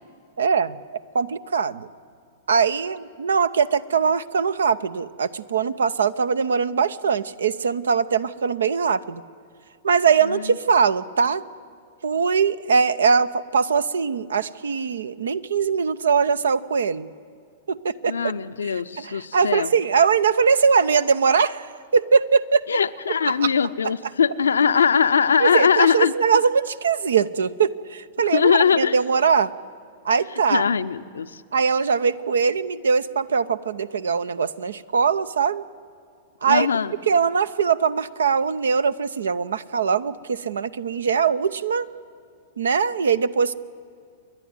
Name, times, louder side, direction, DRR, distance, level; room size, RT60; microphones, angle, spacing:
voice 1, 0.4-0.8 1.1-1.9 2.5-9.2 9.8-11.4 12.0-17.1 17.7-18.1 18.6-22.6 23.2-23.5 25.4-29.5 30.0-30.7 31.5-35.6 36.4-36.7 37.1-41.9 42.6-43.5, right 6 dB, 70° right, 17 dB, 0.6 m, -21 dB
voice 2, 10.2-10.6 18.0-19.7 22.7-26.1 28.3-29.0 30.5-31.4 36.5-36.9, left 7 dB, 75° left, 12 dB, 0.6 m, -21 dB
28.5 x 11.0 x 9.5 m, 2.3 s
figure-of-eight pair, 100°, 0 cm